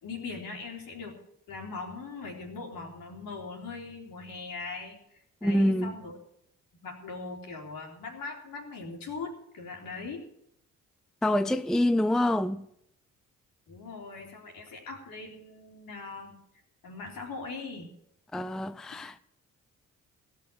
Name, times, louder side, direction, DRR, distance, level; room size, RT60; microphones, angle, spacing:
voice 1, 0.0-1.2 1.5-5.0 5.4-6.1 6.8-10.2 13.7-16.4 16.8-17.9, left 4 dB, 60° left, 4.1 m, -40 dB
voice 2, 5.4-5.9 11.2-12.6 18.3-19.2, left 1 dB, ahead, 0.5 m, -26 dB
17.0 x 6.5 x 8.7 m
hypercardioid pair, 45°, 38 cm